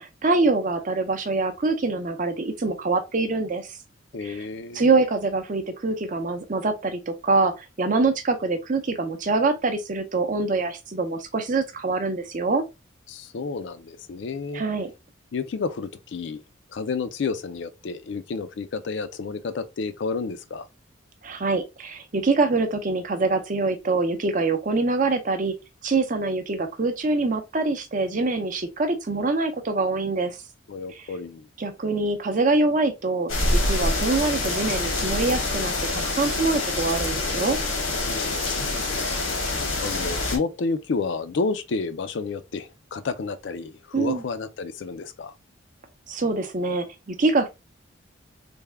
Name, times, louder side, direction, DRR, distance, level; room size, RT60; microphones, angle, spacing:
voice 1, 0.0-3.7 4.2-4.4 4.7-12.6 14.5-14.9 21.2-25.5 25.8-30.4 30.9-31.0 31.6-33.3 33.6-37.6 43.9-44.2 46.1-47.5, right 3 dB, 40° right, 0.5 m, -24 dB
voice 2, 4.1-4.8 13.1-14.6 15.3-16.4 16.7-20.7 30.7-31.5 38.0-38.9 39.8-45.3, left 4 dB, 60° left, 0.4 m, -30 dB
sound 1, 33.3-40.4, left 2 dB, 80° left, 1.0 m, -26 dB
3.4 x 2.2 x 3.3 m
head